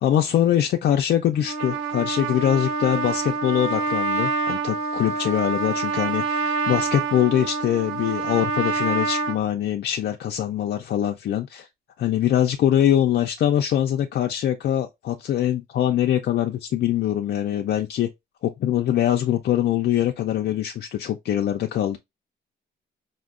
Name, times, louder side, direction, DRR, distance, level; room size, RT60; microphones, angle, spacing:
voice 1, 0.0-11.7 12.0-18.1 18.4-22.0, left 11 dB, 60° left, 0.4 m, -23 dB
Trumpet, 1.4-9.4, right 4 dB, 90° right, 0.9 m, -26 dB
4.3 x 2.1 x 2.4 m
cardioid pair, 90°, 20 cm